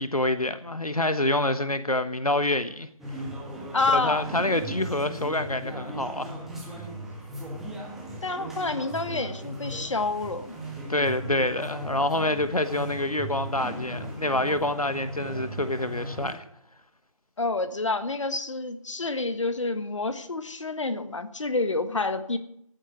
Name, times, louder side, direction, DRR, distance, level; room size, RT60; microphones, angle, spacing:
voice 1, 0.0-2.9 3.9-6.3 10.9-16.4, left 1 dB, 90° left, 1.2 m, -27 dB
sound 1, 3.0-16.3, right 1 dB, ahead, 1.4 m, -37 dB
voice 2, 3.7-4.3 8.2-10.5 17.4-22.4, left 3 dB, 55° left, 1.5 m, -28 dB
15.0 x 8.0 x 9.3 m
figure-of-eight pair, 155°, 18 cm